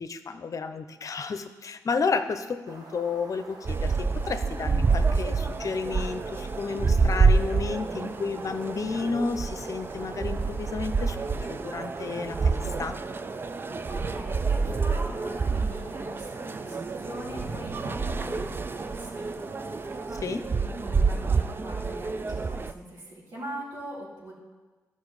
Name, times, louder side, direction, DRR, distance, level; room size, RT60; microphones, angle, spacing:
voice 1, 0.0-13.0 20.2-20.5, left 4 dB, 55° left, 9 dB, 0.7 m, -32 dB
sound 1, 2.7-20.1, right 2 dB, 65° right, 1.4 m, -45 dB
sound 2, 3.7-22.7, right 4 dB, 30° right, 0.4 m, -28 dB
voice 2, 13.9-19.4 20.4-24.3, right 1 dB, 85° right, -6 dB, 3.8 m, -41 dB
14.0 x 5.5 x 4.9 m, 1.3 s
cardioid pair, 70°, 7 cm